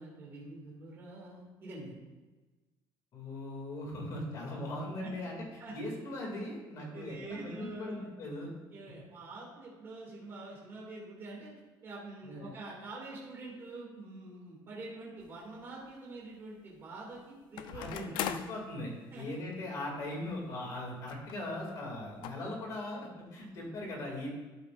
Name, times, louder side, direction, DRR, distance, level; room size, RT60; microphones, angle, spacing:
voice 1, 0.0-1.9 5.0-5.1 5.6-5.7 6.9-8.1 8.7-11.5 11.8-18.2 19.1-19.2 20.2-20.3, right 2 dB, 30° right, -5 dB, 2.2 m, -46 dB
voice 2, 3.1-5.4 5.7-8.5 8.8-8.9 12.2-12.5 17.7-24.3, left 1 dB, 40° left, -1 dB, 2.4 m, -39 dB
sound 1, 15.2-15.3 17.6-18.6 19.5-19.6 19.9-20.0 21.1-21.4 21.7-21.8 22.2-22.3, left 9 dB, 65° left, 0.5 m, -38 dB
11.5 x 7.8 x 2.5 m, 1.2 s
cardioid pair, 180°, 9 cm